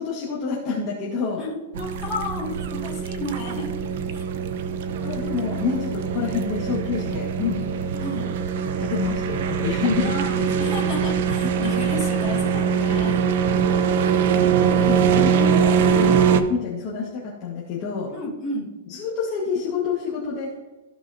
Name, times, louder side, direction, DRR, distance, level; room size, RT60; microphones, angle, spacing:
voice 1, 0.0-1.4 5.0-7.6 8.8-10.1 10.6-10.7 14.8-18.1 18.9-20.5, left 5 dB, 30° left, -6 dB, 1.6 m, -28 dB
voice 2, 1.4-3.7 4.1-4.2 8.0-8.3 10.0-13.2 18.1-18.7, left 2 dB, 10° left, -8 dB, 2.9 m, -32 dB
sound 1, 1.7-16.4, right 7 dB, 50° right, 0.7 m, -22 dB
15.5 x 5.6 x 2.8 m, 1.2 s
hypercardioid pair, 170°, 0 cm